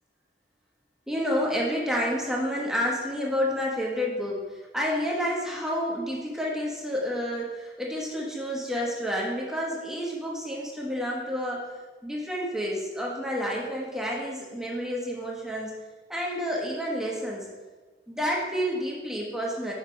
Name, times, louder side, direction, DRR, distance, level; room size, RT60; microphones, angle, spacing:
voice 1, 1.1-4.4 4.7-11.6 12.0-15.7 16.1-17.5 18.1-19.7, equal, 5° right, -3 dB, 1.0 m, -29 dB
6.1 x 4.5 x 4.6 m, 1.3 s
head